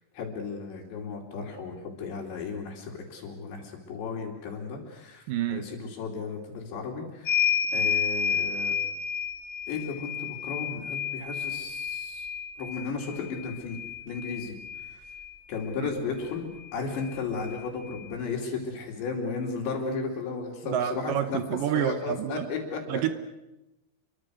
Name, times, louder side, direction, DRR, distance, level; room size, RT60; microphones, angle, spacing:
voice 1, 0.1-5.2 5.5-7.4 7.7-8.7 9.7-12.3 12.6-13.8 14.1-14.6 14.8-15.0 15.5-21.4 21.7-23.1, left 4 dB, 80° left, -5 dB, 5.2 m, -34 dB
voice 2, 5.3-5.7 15.8-15.9 20.6-22.5 22.9-23.1, right 10 dB, 70° right, 10 dB, 2.1 m, -28 dB
sound 1, 7.2-15.4 16.6-16.7 17.0-18.1, left 7 dB, 30° left, 1.4 m, -31 dB
28.5 x 23.5 x 6.4 m, 0.95 s
omnidirectional pair, 5.0 m